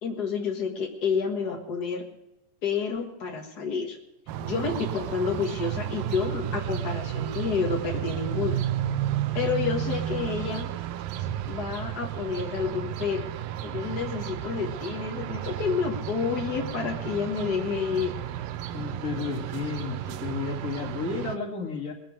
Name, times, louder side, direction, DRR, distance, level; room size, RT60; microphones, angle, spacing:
voice 1, 0.0-2.0 2.6-4.0 4.4-8.6 9.3-10.7 11.5-13.3 13.6-18.1, left 5 dB, 75° left, 1 dB, 0.9 m, -29 dB
sound 1, 4.3-21.4, right 11 dB, 75° right, 2.3 m, -32 dB
voice 2, 18.7-21.9, left 5 dB, 30° left, 0 dB, 1.9 m, -32 dB
21.0 x 7.8 x 6.4 m, 0.89 s
omnidirectional pair, 4.5 m